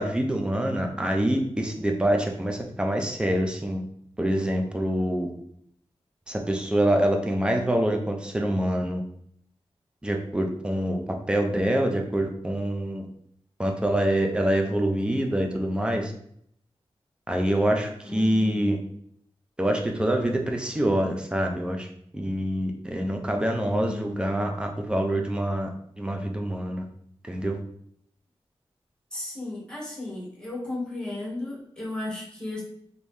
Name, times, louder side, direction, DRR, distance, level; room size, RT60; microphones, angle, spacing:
voice 1, 0.0-3.8 4.2-5.3 6.3-9.0 10.0-11.0 11.3-13.1 13.6-16.1 17.3-18.8 19.6-21.9 22.1-25.7 26.0-26.9 27.3-27.6, right 1 dB, 10° right, 2 dB, 0.5 m, -25 dB
voice 2, 18.0-18.7 23.6-24.2 29.1-32.6, left 2 dB, 10° left, -4 dB, 1.2 m, -35 dB
3.0 x 2.6 x 3.4 m, 0.67 s
wide cardioid pair, 115°, 10 cm